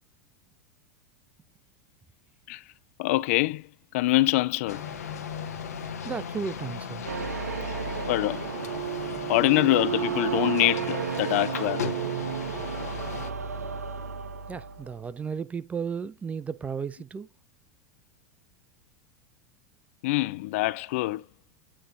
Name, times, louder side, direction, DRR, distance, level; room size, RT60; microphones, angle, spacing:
voice 1, 3.0-3.6 3.9-4.8 8.1-8.4 9.3-11.8 20.0-21.2, left 18 dB, 60° left, 0.4 m, -24 dB
sound 1, 4.7-13.3, left 7 dB, 80° left, 1.2 m, -37 dB
voice 2, 6.0-7.1 14.5-17.3, right 6 dB, 15° right, 0.4 m, -34 dB
sound 2, 7.0-14.9, right 7 dB, 80° right, 0.7 m, -32 dB
8.6 x 3.3 x 3.8 m
hypercardioid pair, 90°, 8 cm